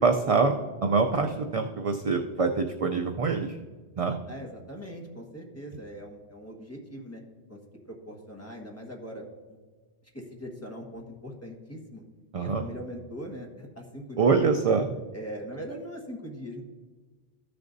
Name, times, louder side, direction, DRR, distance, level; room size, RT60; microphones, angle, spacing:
voice 1, 0.0-3.5 4.0-4.2 12.3-12.6 14.2-15.0, right 4 dB, 50° right, 5 dB, 0.4 m, -25 dB
voice 2, 4.1-7.2 7.5-7.6 7.9-9.6 10.1-12.0 12.4-14.5 15.1-16.6, equal, 15° left, -1 dB, 1.4 m, -41 dB
14.5 x 6.6 x 2.6 m, 1.4 s
omnidirectional pair, 1.1 m